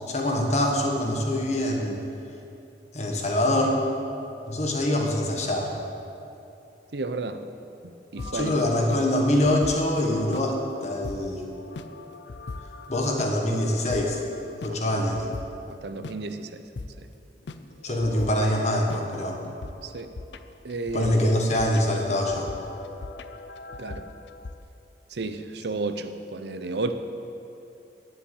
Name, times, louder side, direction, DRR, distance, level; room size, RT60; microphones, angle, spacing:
voice 1, 0.1-2.4 2.9-3.8 4.5-5.8 8.3-11.5 12.9-14.2 14.6-15.3 17.8-19.4 20.9-22.5, left 1 dB, 40° left, 1 dB, 1.5 m, -24 dB
voice 2, 6.9-7.4 8.1-8.5 15.8-16.5 19.9-20.1 20.6-21.1 23.8-24.0 25.1-26.9, right 3 dB, 70° right, 9 dB, 0.6 m, -31 dB
sound 1, 8.2-15.5 16.0-16.1 16.8-16.9 17.5-24.6, left 3 dB, 80° left, 0.5 m, -40 dB
10.0 x 7.9 x 8.3 m, 2.8 s
head